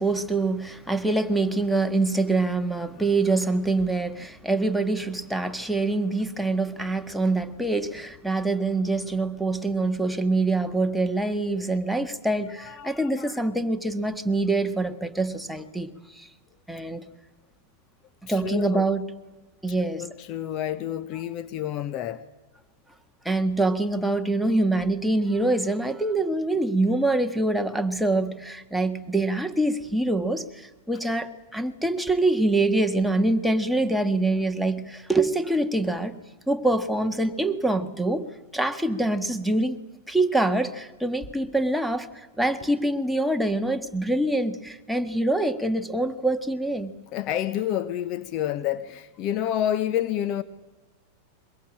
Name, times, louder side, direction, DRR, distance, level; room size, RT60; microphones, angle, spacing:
voice 1, 0.0-16.3 16.7-17.0 18.3-19.0 19.6-20.1 23.2-36.2 36.5-39.8 40.1-46.9, right 2 dB, ahead, 1.6 m, -25 dB
voice 2, 12.6-13.4 18.3-18.9 19.8-22.2 47.1-50.4, left 11 dB, 40° left, 1.0 m, -29 dB
23.0 x 21.5 x 8.7 m
figure-of-eight pair, 90°, 0 cm